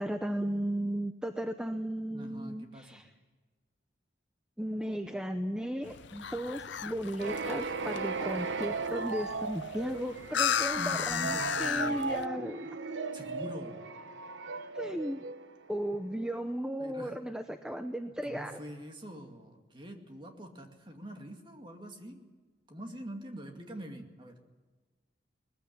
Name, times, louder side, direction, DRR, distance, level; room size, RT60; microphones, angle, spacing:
voice 1, 0.0-3.1 4.6-12.7 14.7-15.2 15.7-18.6, equal, 5° right, 7 dB, 0.7 m, -35 dB
voice 2, 2.1-3.0 10.8-12.0 13.1-13.9 16.2-16.3 16.8-17.2 18.1-22.3 22.7-24.4, equal, 25° right, 3 dB, 2.3 m, -44 dB
sound 1, 5.8-12.3, left 8 dB, 70° left, 0.6 m, -35 dB
sound 2, 7.2-15.9, right 4 dB, 75° right, 1.0 m, -37 dB
20.5 x 15.0 x 9.9 m, 1.3 s
head